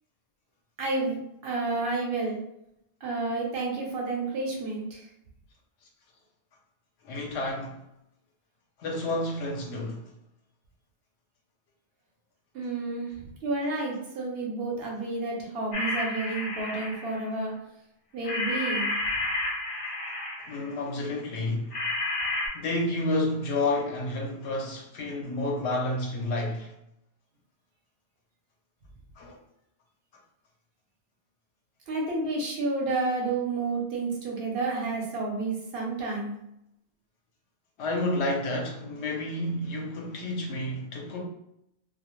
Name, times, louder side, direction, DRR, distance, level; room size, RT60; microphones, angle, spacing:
voice 1, 0.8-2.4 3.0-5.1 12.5-13.1 13.4-17.5 18.1-19.0 31.9-36.4, right 3 dB, 65° right, 0.9 m, -30 dB
voice 2, 7.0-7.8 8.8-10.1 20.5-21.8 22.5-26.7 29.2-29.4 37.8-41.2, left 2 dB, 80° left, 0.9 m, -30 dB
sound 1, 15.7-17.3 18.2-20.7 21.7-22.5, left 2 dB, 50° left, 0.4 m, -31 dB
2.3 x 2.0 x 2.9 m
omnidirectional pair, 1.1 m